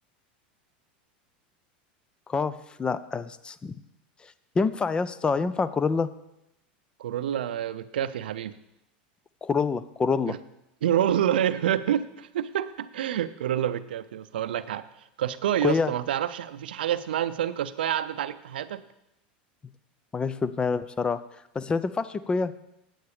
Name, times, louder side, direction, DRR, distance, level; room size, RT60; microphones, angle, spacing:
voice 1, 2.3-3.8 4.6-6.1 9.4-10.4 15.6-15.9 20.1-21.2 21.5-22.5, left 4 dB, 20° left, 15 dB, 0.5 m, -26 dB
voice 2, 7.0-8.6 10.3-10.4 10.8-14.9 15.2-18.8, right 10 dB, 85° right, 14 dB, 0.5 m, -27 dB
8.5 x 7.9 x 4.9 m, 0.86 s
hypercardioid pair, 110°, 5 cm